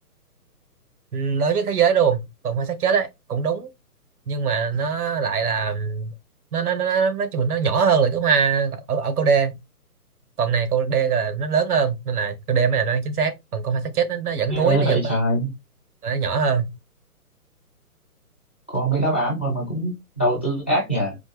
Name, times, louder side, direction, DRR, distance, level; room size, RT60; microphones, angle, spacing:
voice 1, 1.1-3.7 4.3-6.1 6.5-9.6 10.4-15.1 16.0-16.7, right 6 dB, 70° right, 1.1 m, -22 dB
voice 2, 14.5-15.5 18.7-21.2, right 1 dB, 10° left, 0.5 m, -23 dB
4.2 x 2.7 x 3.4 m
hypercardioid pair, 145°, 46 cm